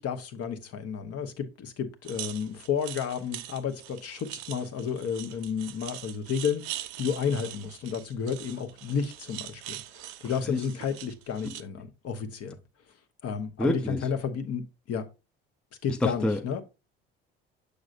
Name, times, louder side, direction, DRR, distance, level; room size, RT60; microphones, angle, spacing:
voice 1, 0.0-12.6 13.2-15.1 15.8-16.6, left 7 dB, 50° left, 1.0 m, -32 dB
sound 1, 2.0-11.6, right 14 dB, 70° right, 0.5 m, -42 dB
voice 2, 13.6-14.1 16.0-16.4, left 1 dB, 5° left, 0.5 m, -28 dB
6.6 x 6.2 x 2.5 m
hypercardioid pair, 55°, 31 cm